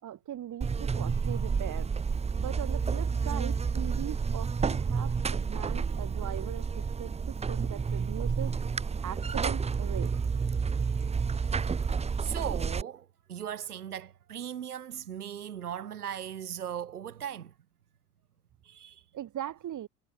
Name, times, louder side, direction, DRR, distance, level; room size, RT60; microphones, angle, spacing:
voice 1, 0.0-1.9 2.4-8.6 9.0-10.2 19.1-19.9, right 11 dB, 40° right, 3.2 m, -40 dB
Buzz, 0.6-12.8, right 5 dB, 15° right, 0.7 m, -30 dB
voice 2, 12.2-17.5 18.6-19.0, right 9 dB, 90° right, 2.9 m, -38 dB
hypercardioid pair, 70°, 44 cm